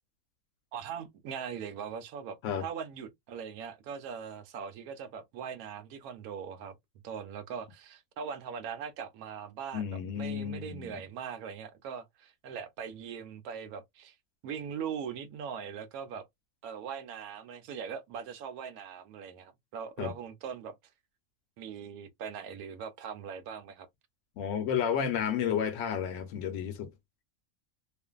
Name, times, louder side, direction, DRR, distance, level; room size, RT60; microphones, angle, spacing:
voice 1, 0.7-6.8 7.0-14.2 14.4-16.2 16.6-20.7 21.6-23.9, right 7 dB, 80° right, 1.1 m, -41 dB
voice 2, 9.7-11.0 20.0-20.1 24.4-26.9, left 8 dB, 65° left, 0.9 m, -32 dB
2.5 x 2.5 x 2.2 m
omnidirectional pair, 1.5 m